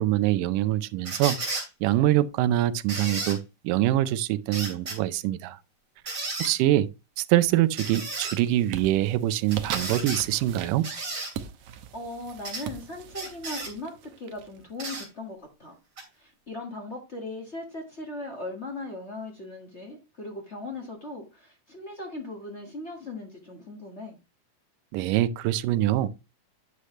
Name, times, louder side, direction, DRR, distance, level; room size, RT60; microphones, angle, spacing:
voice 1, 0.0-1.4 1.8-3.4 3.6-5.6 6.4-6.9 7.2-10.9 24.9-26.1, right 14 dB, 85° right, 2.2 m, -24 dB
sound 1, 1.0-1.7 2.9-3.4 4.5-5.0 6.1-6.5 7.8-8.4 9.5-10.2 10.8-11.3 12.4-12.6 13.1-13.7 14.8-15.1 16.0-16.1, right 3 dB, 35° right, 3.4 m, -33 dB
sound 2, 7.4-7.9 8.2-14.9, right 9 dB, 70° right, 2.0 m, -40 dB
voice 2, 11.6-15.8 16.2-24.2, left 2 dB, 35° left, 1.2 m, -38 dB
9.7 x 6.4 x 3.1 m
omnidirectional pair, 3.7 m